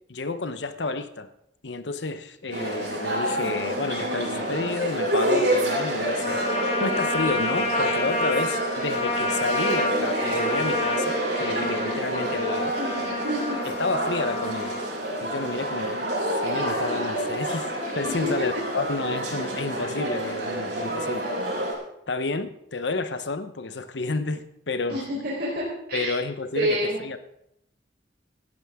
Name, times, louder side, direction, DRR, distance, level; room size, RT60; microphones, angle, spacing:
voice 1, 0.1-1.3 1.6-6.4 6.8-12.8 13.6-14.8 15.2-21.2 22.1-25.0 25.9-27.2, left 3 dB, 80° left, 11 dB, 1.0 m, -30 dB
sound 1, 2.5-21.7, right 1 dB, 85° right, 6.2 m, -28 dB
Trumpet, 6.2-14.9, left 2 dB, 35° left, 1.7 m, -29 dB
voice 2, 12.7-13.6 18.0-18.3 20.6-21.0 24.9-26.1 26.6-27.0, equal, 60° right, -6 dB, 4.3 m, -29 dB
18.0 x 13.0 x 3.7 m, 0.79 s
head